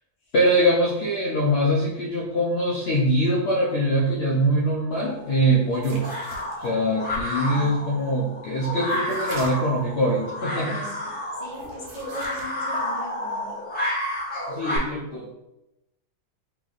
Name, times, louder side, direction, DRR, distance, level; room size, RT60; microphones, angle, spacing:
voice 1, 0.3-6.1 6.6-10.7 14.5-15.3, equal, 70° left, -4 dB, 0.6 m, -23 dB
sound 1, 4.9-14.8, left 1 dB, 5° left, 1.1 m, -31 dB
sound 2, 5.7-7.4 8.9-9.8 11.4-12.9, right 2 dB, 70° right, 1.4 m, -41 dB
voice 2, 7.3-8.2 10.5-11.1 11.4-13.5, equal, 25° left, -6 dB, 1.0 m, -39 dB
3.3 x 3.1 x 3.9 m, 0.91 s
omnidirectional pair, 1.8 m